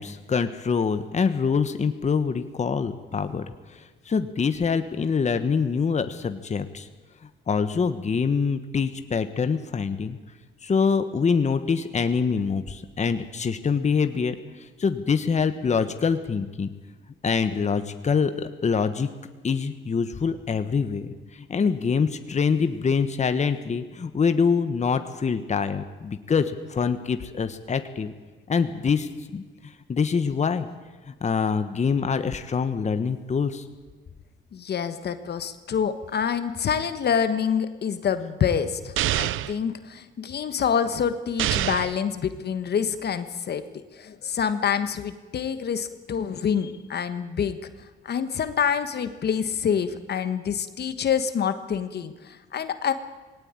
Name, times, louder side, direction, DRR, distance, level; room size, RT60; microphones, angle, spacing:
voice 1, 0.0-3.5 3.7-6.9 7.5-10.2 10.6-16.7 17.2-19.1 19.4-28.1 28.5-30.7 31.1-33.6, left 5 dB, 35° left, 9 dB, 1.4 m, -25 dB
voice 2, 34.5-43.6 43.9-47.7 48.0-52.9, left 7 dB, 55° left, 10 dB, 1.4 m, -27 dB
sound 1, 39.0-39.6 41.4-42.0, right 14 dB, 80° right, 0.7 m, -25 dB
19.5 x 18.0 x 9.0 m, 1.3 s
cardioid pair, 90°, 20 cm